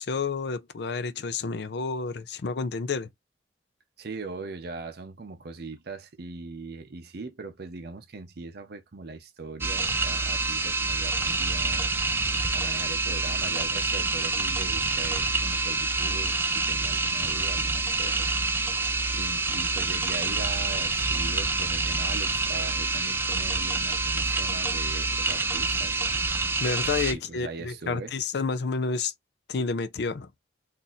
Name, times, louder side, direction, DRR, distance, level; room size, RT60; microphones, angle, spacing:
voice 1, 0.0-3.1 26.6-29.1 29.5-30.3, left 4 dB, 65° left, 0.5 m, -30 dB
voice 2, 4.0-11.9 12.5-18.3 19.1-25.9 27.1-28.1, right 3 dB, 60° right, 0.6 m, -40 dB
sound 1, 9.6-27.1, right 3 dB, 10° right, 0.3 m, -27 dB
2.7 x 2.5 x 4.0 m
head